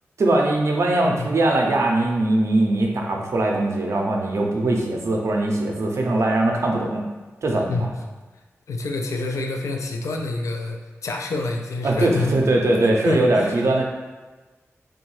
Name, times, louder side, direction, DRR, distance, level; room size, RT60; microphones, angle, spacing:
voice 1, 0.2-7.0 7.4-7.9 11.8-13.8, right 2 dB, 65° right, 0 dB, 0.5 m, -21 dB
voice 2, 8.7-12.4 13.0-13.6, left 2 dB, 75° left, 2 dB, 0.3 m, -27 dB
2.6 x 2.2 x 3.1 m, 1.3 s
cardioid pair, 65°, 5 cm